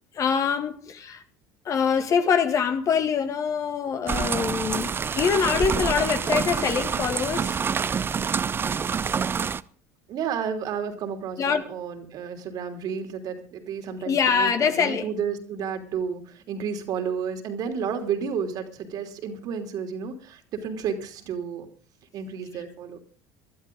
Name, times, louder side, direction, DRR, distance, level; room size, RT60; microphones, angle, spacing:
voice 1, 0.1-1.2 1.7-7.6 11.4-11.6 14.0-15.1, left 6 dB, 45° left, 2.0 m, -24 dB
sound 1, 4.1-9.6, right 6 dB, 30° right, 0.6 m, -27 dB
voice 2, 10.1-21.7 22.1-23.0, right 7 dB, 55° right, 3.1 m, -31 dB
22.0 x 12.5 x 3.8 m
hypercardioid pair, 80°, 8 cm